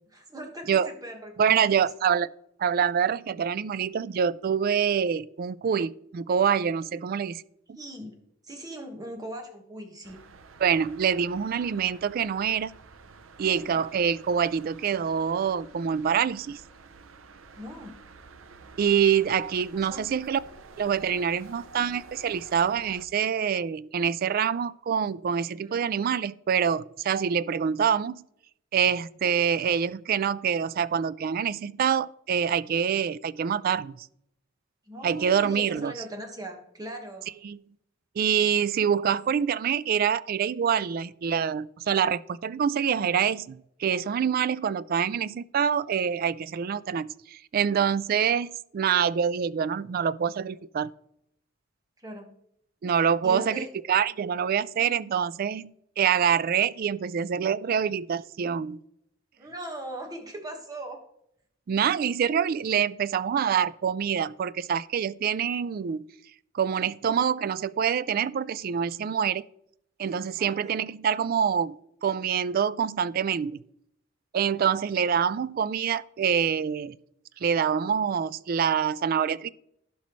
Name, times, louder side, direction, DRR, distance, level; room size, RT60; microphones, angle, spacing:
voice 1, 0.1-1.9 7.7-8.1 8.4-10.2 13.5-13.8 17.6-18.0 19.9-20.0 25.6-25.8 34.9-37.3 38.9-39.2 52.0-52.4 53.2-53.7 59.4-61.0 70.4-70.7, right 1 dB, 20° right, 1.5 m, -40 dB
voice 2, 1.4-2.3 2.6-7.4 7.7-7.8 10.6-12.7 13.4-16.6 18.8-20.4 20.8-28.2 28.7-34.1 35.0-35.9 37.4-37.6 38.2-50.9 52.8-58.8 61.7-66.1 66.5-69.4 70.0-71.8 72.0-73.6 74.3-77.0 77.4-79.5, right 7 dB, 45° right, 0.3 m, -26 dB
sound 1, 10.0-23.1, right 4 dB, 90° right, 0.6 m, -50 dB
15.5 x 5.5 x 3.1 m
head